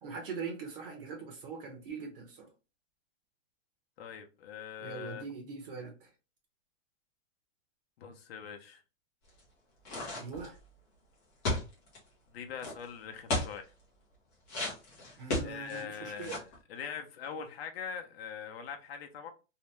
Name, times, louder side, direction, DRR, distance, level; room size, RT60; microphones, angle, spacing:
voice 1, 0.0-2.5 4.8-6.1 10.1-10.6 15.2-16.4, right 5 dB, 45° right, 0.8 m, -42 dB
voice 2, 4.0-5.2 8.0-8.8 12.3-13.7 15.0-15.2 15.4-19.3, left 7 dB, 55° left, 0.7 m, -42 dB
sound 1, 9.8-10.5 11.4-12.0 12.6-12.7 13.3-13.6 14.5-15.8 16.2-16.5, left 2 dB, 15° left, 0.5 m, -33 dB
2.8 x 2.0 x 3.2 m
hypercardioid pair, 165°, 38 cm